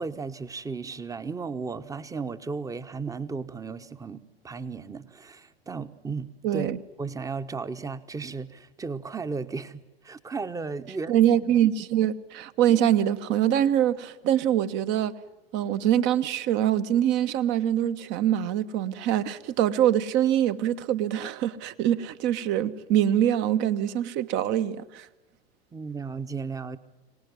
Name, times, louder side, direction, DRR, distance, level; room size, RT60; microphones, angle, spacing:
voice 1, 0.0-6.7 7.0-9.8 10.0-11.2 25.7-26.8, right 4 dB, 10° right, 1.1 m, -35 dB
voice 2, 6.4-6.8 11.1-15.1 15.5-25.1, right 11 dB, 40° right, 1.2 m, -24 dB
25.0 x 18.5 x 9.7 m
figure-of-eight pair, 85°, 30 cm